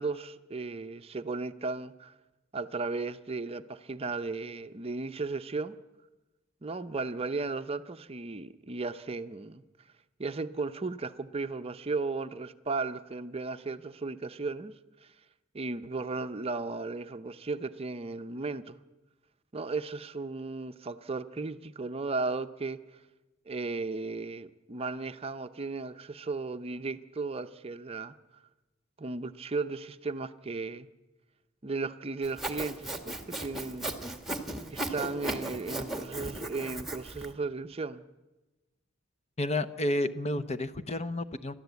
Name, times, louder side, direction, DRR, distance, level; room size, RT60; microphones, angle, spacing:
voice 1, 0.0-2.1 2.5-5.7 6.6-9.6 10.2-14.7 15.5-18.8 19.5-22.8 23.5-28.1 29.0-30.9 31.6-33.9 34.7-38.0, right 3 dB, 30° right, 10 dB, 0.6 m, -35 dB
Sawing, 32.2-37.3, right 1 dB, ahead, 1.6 m, -36 dB
voice 2, 39.4-41.5, left 1 dB, 35° left, 12 dB, 0.8 m, -31 dB
29.0 x 12.5 x 8.2 m, 1.1 s
head